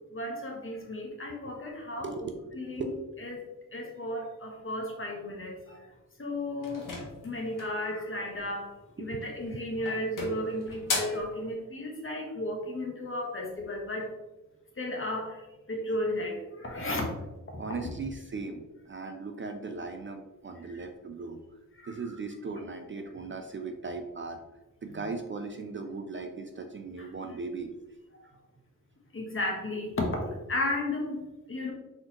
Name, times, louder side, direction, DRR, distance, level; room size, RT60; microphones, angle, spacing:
voice 1, 0.1-2.1 2.5-2.9 3.2-5.9 6.2-8.7 9.0-14.1 14.8-17.1 20.7-20.8 21.8-21.9 27.0-27.1 29.1-31.7, left 1 dB, 40° left, 0 dB, 1.0 m, -34 dB
voice 2, 2.0-2.3 2.7-3.0 9.0-9.2 17.6-21.4 21.9-24.4 24.8-27.7, right 4 dB, 40° right, 5 dB, 0.4 m, -38 dB
sound 1, 6.6-7.9 9.1-9.5 9.8-11.3, left 3 dB, 75° left, 1.0 m, -35 dB
4.2 x 3.8 x 2.9 m, 1.1 s
wide cardioid pair, 120°, 33 cm